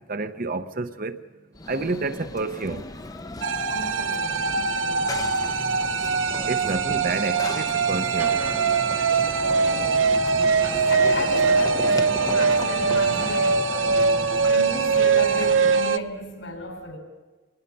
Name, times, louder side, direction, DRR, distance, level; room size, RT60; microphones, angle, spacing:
voice 1, 0.1-1.2 1.7-2.8 6.5-8.4, right 3 dB, 45° right, 10 dB, 0.8 m, -29 dB
Run / Train, 1.5-16.0, left 2 dB, 20° left, 0.5 m, -36 dB
sound 1, 3.4-16.0, right 5 dB, 90° right, 0.6 m, -22 dB
voice 2, 3.7-5.2 9.4-10.1 10.9-17.0, left 1 dB, 85° left, 3 dB, 4.6 m, -34 dB
sound 2, 8.2-13.5, right 1 dB, 10° right, 0.9 m, -41 dB
24.5 x 19.5 x 5.5 m, 1.3 s
head